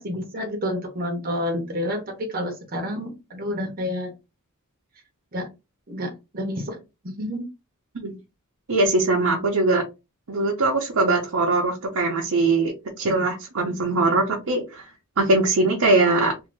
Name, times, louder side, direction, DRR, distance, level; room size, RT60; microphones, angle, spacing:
voice 1, 0.0-4.1 5.3-5.5 5.9-6.8 7.0-7.4, left 1 dB, 45° right, 0.9 m, -29 dB
voice 2, 8.7-9.8 10.3-12.7 13.0-14.9 15.2-16.3, right 2 dB, 90° right, 0.7 m, -21 dB
2.7 x 2.5 x 3.2 m
head